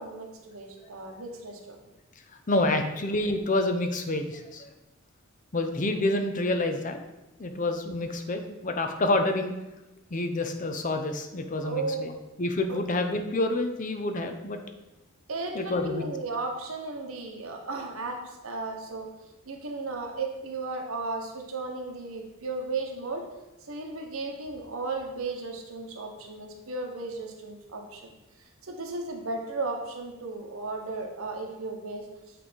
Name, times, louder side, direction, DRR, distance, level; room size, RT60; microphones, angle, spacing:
voice 1, 0.0-1.8 11.6-12.1 12.7-12.8 15.3-19.1 19.5-23.2 23.7-28.1 28.6-32.1, right 3 dB, 80° right, 2 dB, 1.2 m, -35 dB
voice 2, 2.5-4.7 5.5-7.0 7.4-9.5 10.1-12.1 12.4-14.6 15.5-16.0, left 2 dB, 35° left, 6 dB, 0.6 m, -28 dB
8.5 x 3.4 x 5.2 m, 0.99 s
head